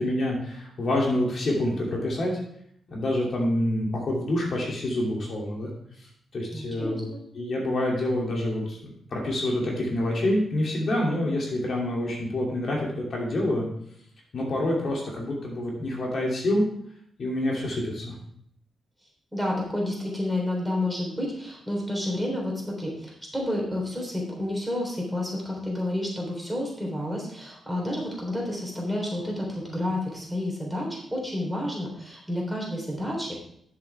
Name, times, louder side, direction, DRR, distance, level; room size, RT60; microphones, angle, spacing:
voice 1, 0.0-2.4 2.9-5.7 6.3-7.1 7.3-13.7 14.3-16.6 17.2-18.1, left 1 dB, 55° left, -2 dB, 2.8 m, -27 dB
voice 2, 6.5-7.2 19.3-33.5, left 1 dB, 5° right, -2 dB, 3.6 m, -30 dB
10.5 x 7.3 x 3.5 m, 0.67 s
cardioid pair, 105°, 0 cm